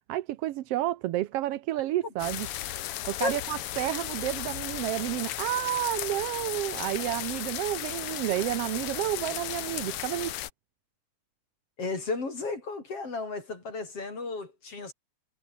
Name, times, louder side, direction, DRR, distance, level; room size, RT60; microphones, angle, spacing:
voice 1, 0.1-2.5 3.1-10.3, right 14 dB, 70° right, 1.6 m, -30 dB
sound 1, 2.2-10.5, left 13 dB, 65° left, 1.5 m, -35 dB
voice 2, 11.8-14.9, left 3 dB, 50° left, 6.2 m, -33 dB
omnidirectional pair, 3.4 m